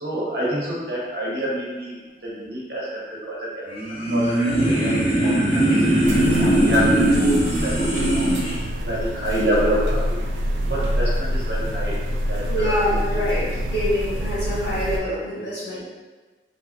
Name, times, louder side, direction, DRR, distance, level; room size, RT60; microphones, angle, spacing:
voice 1, 0.0-6.0 6.4-8.3 8.8-10.2 10.7-12.0 12.3-12.7, equal, 65° right, -5 dB, 0.8 m, -27 dB
sound 1, 3.7-8.6, right 1 dB, 35° left, 0.7 m, -20 dB
sound 2, 6.0-15.0, equal, 90° right, 0.3 m, -26 dB
voice 2, 12.5-15.8, equal, 80° left, -8 dB, 1.1 m, -25 dB
2.9 x 2.4 x 2.3 m, 1.3 s
head